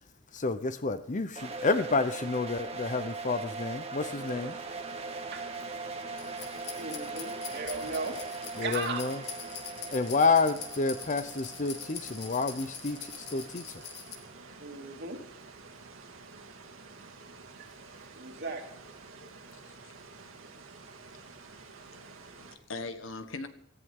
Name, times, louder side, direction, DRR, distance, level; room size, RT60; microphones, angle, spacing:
voice 1, 0.3-4.6 8.6-9.2 9.9-13.6, left 4 dB, 40° left, 12 dB, 0.7 m, -29 dB
sound 1, 1.3-14.2, right 3 dB, 30° right, 1.6 m, -41 dB
sound 2, 4.0-22.6, right 4 dB, 85° right, 2.1 m, -50 dB
sound 3, 6.2-14.1, left 8 dB, 55° left, 1.9 m, -44 dB
voice 2, 6.7-8.2 8.6-9.0 14.6-15.2 18.1-18.8, right 3 dB, 55° right, 2 dB, 2.9 m, -36 dB
voice 3, 21.8-23.5, left 3 dB, 70° left, 9 dB, 1.5 m, -42 dB
18.0 x 14.5 x 3.7 m, 0.74 s
head